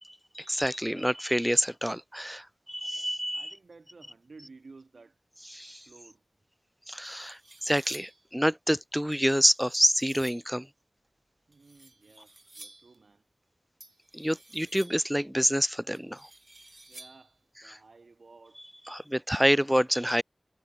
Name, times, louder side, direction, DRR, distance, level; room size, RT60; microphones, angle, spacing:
voice 1, 0.4-3.5 5.5-5.8 6.9-10.7 14.1-16.2 18.9-20.2, equal, 5° right, 0.3 m, -27 dB
voice 2, 3.3-5.2 5.9-6.2 11.5-13.3 16.9-18.8, right 3 dB, 90° right, 2.0 m, -54 dB
sound 1, 6.4-6.5 6.9-8.3 9.1-10.5 11.5-13.0 13.8-15.2 15.9-17.4, right 2 dB, 45° right, 1.4 m, -52 dB
wide cardioid pair, 55°, 0 cm